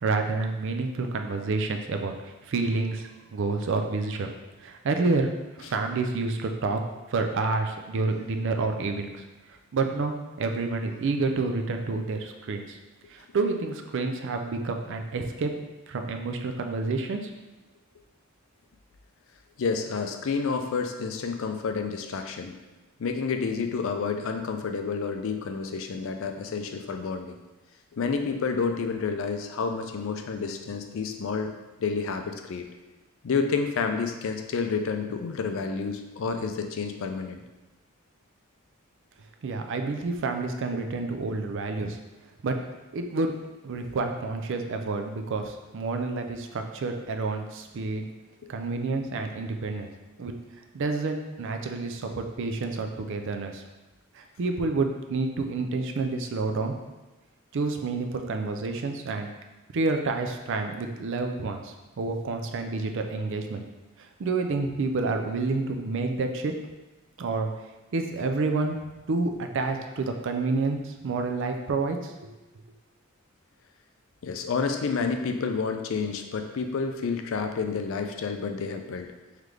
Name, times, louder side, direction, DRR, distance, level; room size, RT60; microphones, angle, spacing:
voice 1, 0.0-4.3 4.6-6.8 7.1-9.3 9.7-12.8 13.1-15.5 15.9-17.3 39.4-42.0 42.4-42.6 42.9-43.3 43.6-48.0 48.5-49.9 50.2-50.4 50.7-53.6 54.1-56.8 57.5-59.3 59.7-63.6 64.0-66.5 67.2-67.5 67.9-72.3, right 3 dB, 60° right, 5 dB, 0.4 m, -29 dB
voice 2, 19.6-22.6 23.0-27.4 27.9-31.5 31.8-32.7 33.2-37.4 48.4-48.5 74.2-79.1, left 5 dB, 65° left, 5 dB, 0.4 m, -29 dB
3.8 x 3.2 x 3.2 m, 1.1 s
head